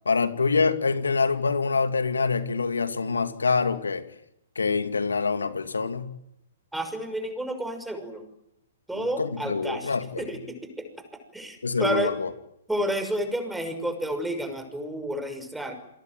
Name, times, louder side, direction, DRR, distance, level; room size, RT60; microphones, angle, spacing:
voice 1, 0.1-4.0 4.6-6.1 8.9-10.2 11.6-12.3, left 4 dB, 80° left, 10 dB, 2.6 m, -25 dB
voice 2, 6.7-8.2 8.9-10.9 11.3-12.1 12.7-15.8, right 1 dB, 5° right, 7 dB, 6.0 m, -30 dB
28.0 x 22.5 x 9.4 m, 0.81 s
figure-of-eight pair, 120°, 0 cm